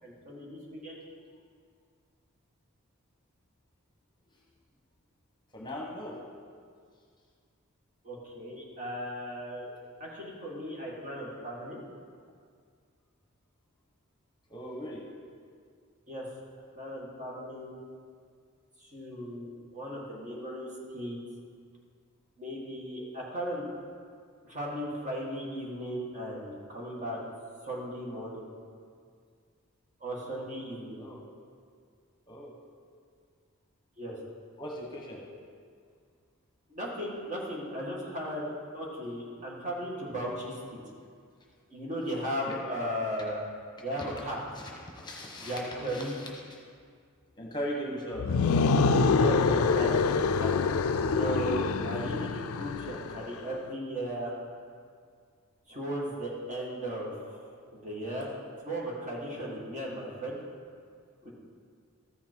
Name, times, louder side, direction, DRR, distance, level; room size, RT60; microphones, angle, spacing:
voice 1, 0.0-1.0 8.0-9.7 10.0-11.8 16.1-16.3 16.8-17.8 18.8-21.2 22.4-23.7 24.4-27.2 27.7-28.4 30.0-31.0 34.0-34.1 36.7-40.6 41.7-43.4 43.8-44.6 45.4-46.2 49.0-50.7 51.1-54.3 55.7-58.3 58.6-60.4 61.2-61.3, equal, 35° right, -3 dB, 1.9 m, -36 dB
voice 2, 5.5-6.2 14.5-15.1 31.0-31.2 32.3-32.5 34.6-35.2 42.5-42.6 43.9-44.2 44.5-46.6 47.4-48.3, equal, 20° left, -1 dB, 1.1 m, -39 dB
sound 1, 48.2-53.2, left 4 dB, 70° left, 0.4 m, -26 dB
14.0 x 5.8 x 4.5 m, 2.1 s
head